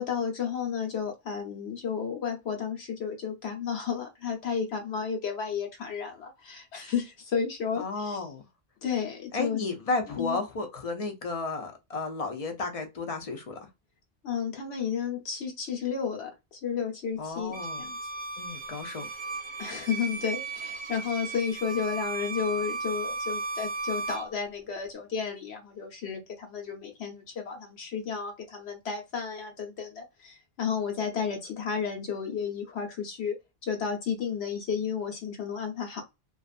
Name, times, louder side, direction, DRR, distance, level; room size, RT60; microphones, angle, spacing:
voice 1, 0.0-8.2 8.8-9.6 10.1-10.4 14.2-18.0 19.6-33.3 33.6-36.0, left 6 dB, 85° left, 1.1 m, -32 dB
voice 2, 7.8-8.5 9.3-13.6 17.2-17.9 18.4-19.1, left 3 dB, 45° left, 0.5 m, -33 dB
Bowed string instrument, 17.5-24.3, right 3 dB, 30° right, 0.6 m, -35 dB
2.4 x 2.4 x 2.4 m
omnidirectional pair, 1.1 m